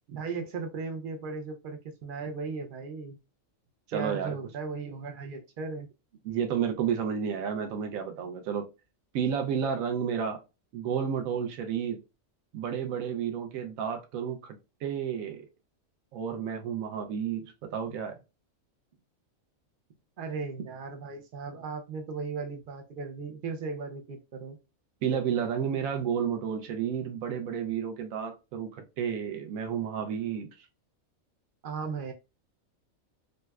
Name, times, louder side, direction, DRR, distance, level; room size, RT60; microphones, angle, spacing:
voice 1, 0.1-3.2 3.9-5.9 20.2-24.6 31.6-32.1, right 4 dB, 65° right, 0.5 m, -36 dB
voice 2, 3.9-4.4 6.2-8.7 9.1-10.4 10.7-12.0 12.5-14.6 14.8-15.4 16.1-18.2 25.0-30.7, right 7 dB, 85° right, 1.0 m, -31 dB
3.9 x 2.2 x 2.2 m
omnidirectional pair, 1.4 m